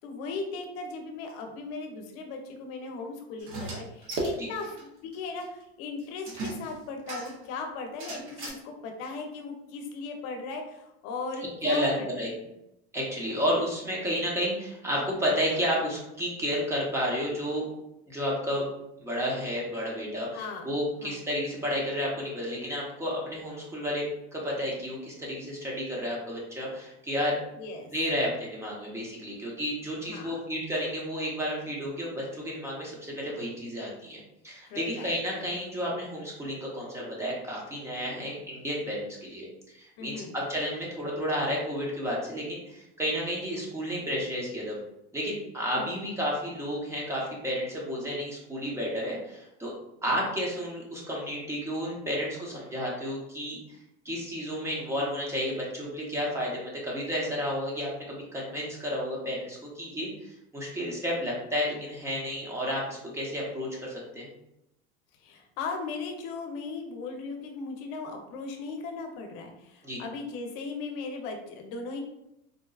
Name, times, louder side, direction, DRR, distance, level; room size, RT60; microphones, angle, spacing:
voice 1, 0.0-12.1 12.4-12.5 20.3-20.7 21.0-21.2 27.6-27.9 30.0-30.4 34.7-35.5 40.0-40.4 45.7-46.0 50.0-50.2 65.2-72.0, left 4 dB, 70° left, 3 dB, 0.7 m, -38 dB
sound 1, 3.4-4.8 5.1-5.2 5.4-5.5 6.3-7.5 8.0-8.5, right 2 dB, 45° right, 0.8 m, -35 dB
voice 2, 11.6-12.3 12.9-17.6 18.1-18.6 19.0-27.4 27.9-39.5 39.7-44.8 45.1-49.7 50.0-53.8 54.0-64.3 69.8-70.0, equal, 10° right, -4 dB, 0.8 m, -31 dB
4.0 x 2.2 x 2.3 m, 0.85 s
cardioid pair, 145°, 31 cm